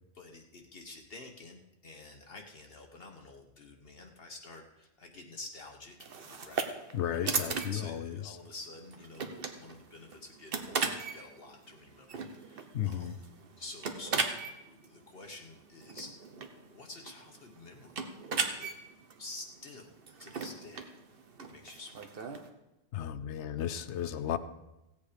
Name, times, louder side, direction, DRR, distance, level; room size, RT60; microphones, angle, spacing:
voice 1, 0.1-6.0 6.2-6.7 7.1-7.3 7.7-13.2 13.6-14.3 14.7-16.1 16.4-18.0 18.6-18.7 19.2-20.9 21.5-22.3, left 2 dB, 60° left, 2 dB, 1.2 m, -49 dB
sound 1, 6.0-22.5, right 5 dB, 60° right, 1.2 m, -38 dB
voice 2, 6.9-8.4 12.7-13.2 22.9-24.4, left 10 dB, 85° left, 13 dB, 1.0 m, -34 dB
16.0 x 8.5 x 5.0 m, 0.95 s
omnidirectional pair, 1.1 m